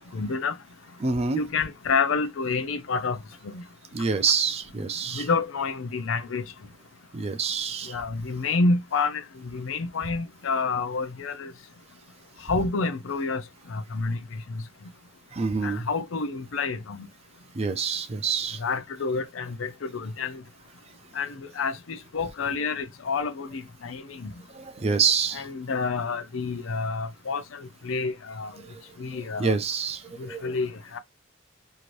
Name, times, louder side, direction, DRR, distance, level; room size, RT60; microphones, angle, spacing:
voice 1, 0.1-0.5 1.3-3.2 3.4-3.6 5.1-6.4 7.9-9.2 9.5-11.5 12.5-13.4 13.7-14.2 15.6-17.1 18.6-20.4 21.2-24.3 25.3-28.5 29.0-29.6 30.2-31.0, left 4 dB, 85° left, 0.5 m, -28 dB
voice 2, 1.0-1.4 3.9-5.2 7.1-8.0 15.3-15.8 17.5-18.6 24.5-25.4 29.4-30.0 30.3-30.4, right 5 dB, 30° right, 0.4 m, -26 dB
2.7 x 2.6 x 3.1 m
head